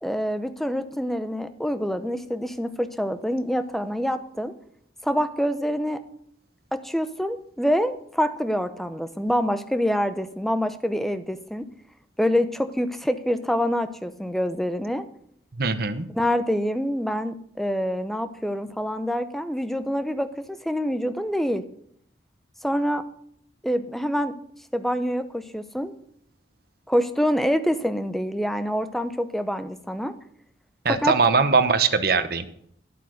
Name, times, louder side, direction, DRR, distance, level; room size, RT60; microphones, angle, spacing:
voice 1, 0.0-4.5 5.0-6.0 6.7-11.7 12.2-15.0 16.2-21.6 22.6-23.0 23.6-24.4 24.7-25.9 26.9-30.1 31.0-31.1, equal, ahead, 10 dB, 0.7 m, -26 dB
voice 2, 15.5-16.1 30.8-32.4, right 4 dB, 55° right, 9 dB, 1.0 m, -21 dB
12.0 x 8.3 x 6.4 m, 0.67 s
head